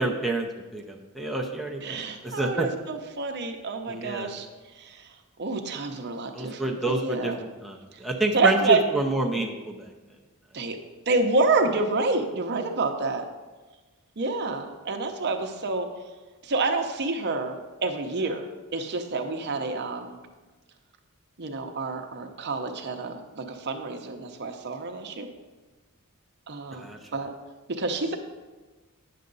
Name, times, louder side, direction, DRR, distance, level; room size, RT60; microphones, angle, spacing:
voice 1, 0.0-2.7 3.9-4.3 6.3-9.9 26.8-27.0, right 2 dB, ahead, 2 dB, 0.6 m, -28 dB
voice 2, 1.8-4.5 4.8-5.1 5.4-7.4 8.3-8.8 9.3-9.5 10.5-10.8 11.1-13.2 14.2-15.9 16.4-18.5 18.7-20.1 21.4-25.3 26.5-27.3 27.8-28.2, right 3 dB, 50° right, 5 dB, 0.8 m, -28 dB
9.4 x 6.6 x 3.9 m, 1.2 s
head